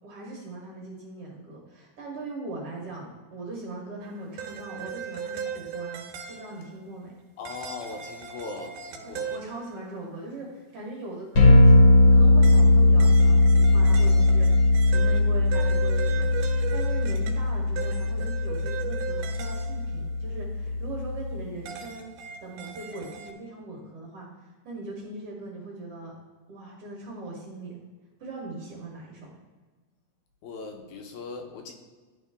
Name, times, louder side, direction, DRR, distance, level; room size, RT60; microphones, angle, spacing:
voice 1, 0.0-7.2 9.0-16.3 16.7-22.1 22.4-24.3 24.6-26.1 26.5-27.8 28.2-29.3, right 2 dB, 55° right, -3 dB, 1.9 m, -40 dB
sound 1, 4.0-6.7 7.4-10.0 12.4-20.8 21.1-23.3, right 7 dB, 85° right, 2.2 m, -38 dB
voice 2, 7.4-9.4 30.4-31.7, left 4 dB, 75° left, 2 dB, 2.0 m, -39 dB
sound 2, 11.3-21.4, left 2 dB, 45° left, 1.5 m, -19 dB
11.0 x 3.8 x 3.4 m, 1.4 s
omnidirectional pair, 3.6 m